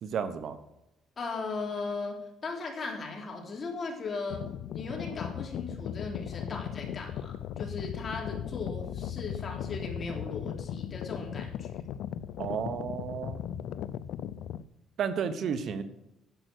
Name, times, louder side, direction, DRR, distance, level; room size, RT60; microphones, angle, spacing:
voice 1, 0.0-0.6 12.4-13.4 15.0-15.8, right 7 dB, 60° right, 11 dB, 1.0 m, -32 dB
voice 2, 1.2-4.4 4.7-11.8, left 3 dB, 35° left, 1 dB, 3.5 m, -37 dB
sound 1, 4.3-14.6, left 10 dB, 75° left, 0.5 m, -37 dB
10.5 x 7.9 x 6.2 m, 0.89 s
cardioid pair, 115°, 0 cm